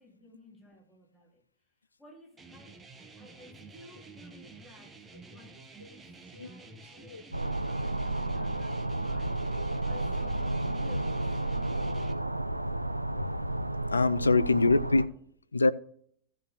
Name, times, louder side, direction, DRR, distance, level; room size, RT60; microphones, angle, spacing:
voice 1, 0.0-1.4 2.0-2.7 3.2-5.0 5.2-11.5, left 1 dB, 5° left, 3.1 m, -56 dB
sound 1, 2.4-12.1, right 3 dB, 15° right, 1.2 m, -50 dB
sound 2, 7.3-15.1, right 2 dB, 85° right, 0.4 m, -32 dB
voice 2, 13.9-15.1 15.5-15.7, left 3 dB, 75° left, 0.4 m, -24 dB
15.5 x 7.7 x 3.0 m
figure-of-eight pair, 90°, 0 cm